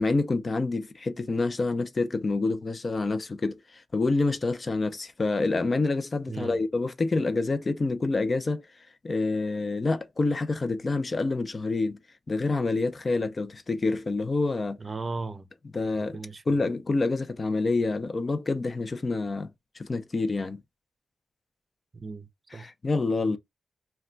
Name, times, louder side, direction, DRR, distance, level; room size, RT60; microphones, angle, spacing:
voice 1, 0.0-8.6 9.0-12.0 12.3-14.8 15.7-16.2 16.5-19.5 19.8-20.6 22.5-23.4, left 3 dB, 45° left, 0.5 m, -27 dB
voice 2, 6.3-6.6 14.8-15.4 16.1-16.6 21.9-22.7 23.2-23.4, right 3 dB, 45° right, 0.5 m, -37 dB
2.3 x 2.2 x 3.8 m
cardioid pair, 55°, 0 cm